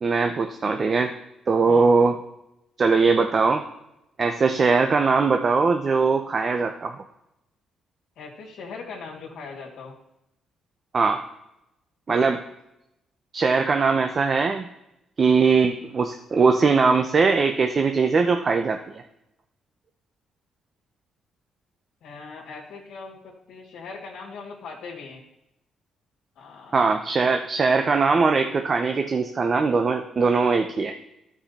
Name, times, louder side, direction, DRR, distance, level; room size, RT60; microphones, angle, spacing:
voice 1, 0.0-1.1 1.5-2.2 2.8-3.6 4.2-6.9 10.9-11.2 12.1-12.4 13.3-14.7 15.2-19.0 26.7-30.9, right 4 dB, 40° right, 6 dB, 0.7 m, -21 dB
voice 2, 8.2-9.9 12.2-12.3 22.0-25.2 26.4-26.9, left 4 dB, 75° left, -2 dB, 2.0 m, -40 dB
13.0 x 4.9 x 4.3 m, 0.85 s
cardioid pair, 90°, 0 cm